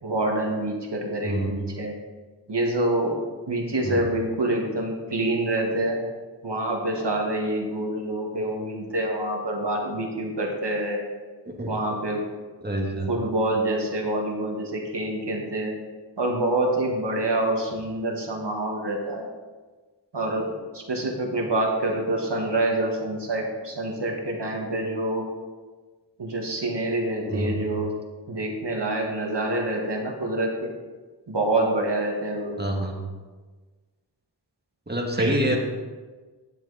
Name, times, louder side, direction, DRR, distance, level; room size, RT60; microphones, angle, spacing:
voice 1, 0.0-2.0 2.5-3.2 3.5-6.0 6.4-11.0 11.7-12.3 13.1-15.8 16.2-19.3 20.1-25.3 26.2-27.9 28.3-30.7 31.3-32.6 35.2-35.4, right 1 dB, 70° right, 1 dB, 1.8 m, -26 dB
voice 2, 12.6-13.1 27.3-27.6 32.6-32.9 34.9-35.6, right 1 dB, 20° right, 0 dB, 1.9 m, -26 dB
10.5 x 8.0 x 4.1 m, 1.3 s
wide cardioid pair, 40°, 43 cm